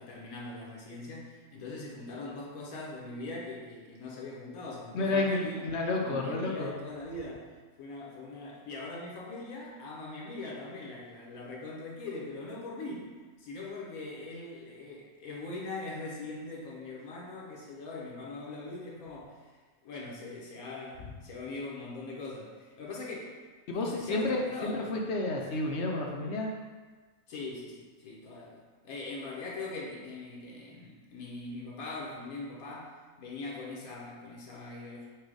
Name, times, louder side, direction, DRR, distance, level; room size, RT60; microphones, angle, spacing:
voice 1, 0.0-5.6 6.0-7.5 7.8-13.1 13.4-19.5 19.8-23.3 23.8-25.0 27.3-35.1, left 2 dB, 80° left, -4 dB, 1.3 m, -41 dB
voice 2, 4.9-6.7 23.7-26.5, left 2 dB, 60° left, 0 dB, 0.8 m, -30 dB
4.8 x 2.2 x 4.5 m, 1.4 s
omnidirectional pair, 1.5 m